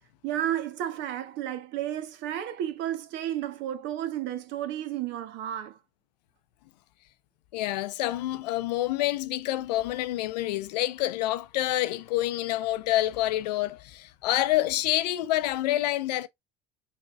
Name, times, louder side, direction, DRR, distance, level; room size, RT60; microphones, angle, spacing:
voice 1, 0.2-5.8, right 11 dB, 60° right, 1.1 m, -32 dB
voice 2, 7.5-16.3, left 15 dB, 80° left, 0.6 m, -27 dB
5.2 x 4.2 x 2.4 m
hypercardioid pair, 75°, 21 cm